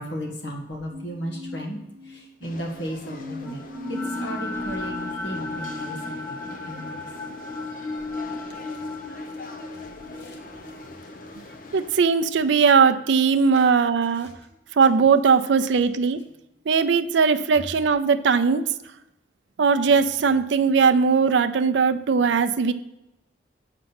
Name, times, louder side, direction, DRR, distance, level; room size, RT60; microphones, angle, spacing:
voice 1, 0.0-1.8 2.0-3.6 3.9-6.9 10.2-10.4 13.5-13.6, equal, 80° left, 1 dB, 1.8 m, -35 dB
sound 1, 0.9-8.3 9.0-9.5, left 3 dB, 30° right, 0.8 m, -43 dB
sound 2, 2.4-11.9, left 3 dB, 45° left, 0.7 m, -44 dB
sound 3, 3.4-13.6, left 2 dB, 15° left, 0.5 m, -35 dB
voice 2, 11.7-14.3 14.8-16.2 16.7-18.6 19.6-22.7, right 5 dB, 80° right, 9 dB, 0.4 m, -19 dB
7.5 x 5.2 x 5.8 m, 0.89 s
head